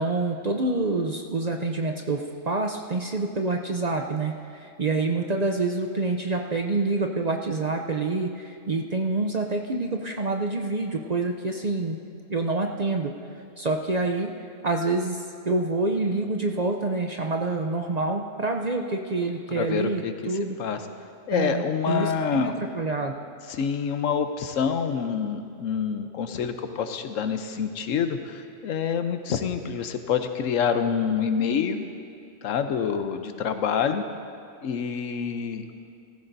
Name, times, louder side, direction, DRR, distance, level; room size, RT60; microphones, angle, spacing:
voice 1, 0.0-12.0 12.3-13.1 13.6-14.3 14.6-20.6 21.3-23.2, right 3 dB, 45° right, 3 dB, 0.6 m, -27 dB
voice 2, 19.5-20.1 20.6-20.8 21.3-22.5 23.5-31.8 32.4-34.0 34.6-35.6, left 7 dB, 85° left, 8 dB, 1.1 m, -27 dB
17.0 x 14.5 x 2.7 m, 2.6 s
omnidirectional pair, 1.3 m